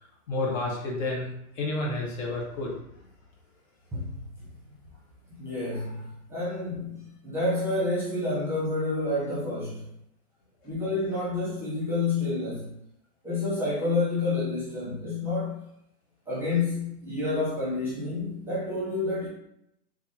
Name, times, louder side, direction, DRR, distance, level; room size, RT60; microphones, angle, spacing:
voice 1, 0.0-3.1 10.6-10.7, left 2 dB, 50° left, -1 dB, 1.5 m, -31 dB
voice 2, 5.3-9.8 10.6-12.8 13.2-15.7 16.3-19.3, left 2 dB, 5° right, -7 dB, 0.9 m, -29 dB
3.8 x 3.3 x 2.9 m, 0.79 s
hypercardioid pair, 140°, 47 cm